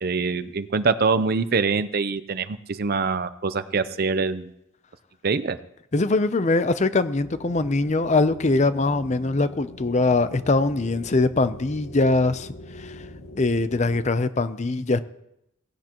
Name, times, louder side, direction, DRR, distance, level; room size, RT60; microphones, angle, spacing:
voice 1, 0.0-4.5 5.2-5.6, right 4 dB, 45° right, 13 dB, 0.6 m, -24 dB
voice 2, 5.9-13.0 13.4-15.0, left 3 dB, 35° left, 12 dB, 0.6 m, -22 dB
sound 1, 7.1-14.0, left 1 dB, 70° left, 1.5 m, -42 dB
17.5 x 16.5 x 3.0 m, 0.82 s
head